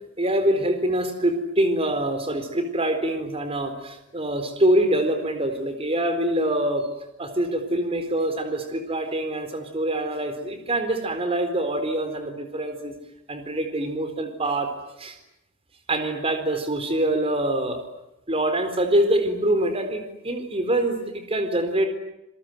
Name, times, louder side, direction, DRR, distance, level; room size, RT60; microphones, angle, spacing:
voice 1, 0.2-6.9 7.2-12.9 13.3-14.7 15.0-15.2 15.9-17.8 18.3-21.9, right 1 dB, 30° right, 7 dB, 4.2 m, -25 dB
27.5 x 22.5 x 9.4 m, 0.86 s
head